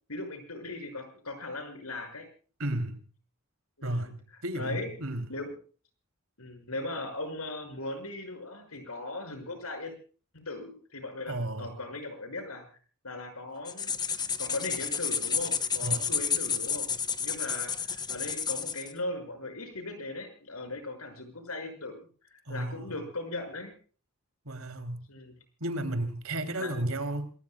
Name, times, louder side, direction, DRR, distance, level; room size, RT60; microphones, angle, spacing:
voice 1, 0.1-2.3 3.8-4.2 4.5-4.9 5.3-5.5 6.4-9.9 10.3-12.7 13.0-14.0 14.4-16.9 17.2-23.7 25.1-25.3 26.6-26.8, left 2 dB, 90° left, 7 dB, 6.1 m, -38 dB
voice 2, 2.6-3.0 3.8-5.3 11.3-11.8 15.8-16.1 22.5-22.9 24.4-25.1 25.6-27.3, right 1 dB, 70° right, 9 dB, 3.1 m, -33 dB
sound 1, 13.7-18.9, left 6 dB, 20° left, 0.9 m, -31 dB
27.5 x 19.5 x 2.3 m, 0.40 s
head